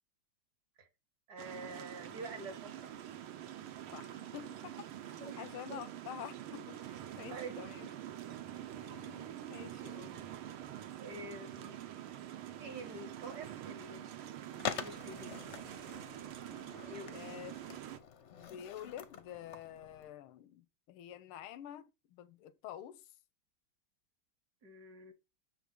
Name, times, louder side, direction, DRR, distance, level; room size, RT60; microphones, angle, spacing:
voice 1, 1.3-2.9 5.2-5.8 7.3-7.9 11.0-11.8 12.6-14.2 14.4-15.4 16.9-17.4 24.6-25.1, right 2 dB, 50° right, 1.9 m, -48 dB
sound 1, 1.4-18.0, right 11 dB, 80° right, 1.7 m, -46 dB
voice 2, 3.9-7.9 8.8-10.2 17.1-17.5 18.3-23.0, left 11 dB, 90° left, 1.6 m, -48 dB
Skateboard, 14.6-20.1, left 8 dB, 60° left, 0.7 m, -45 dB
6.7 x 5.1 x 5.1 m
omnidirectional pair, 2.3 m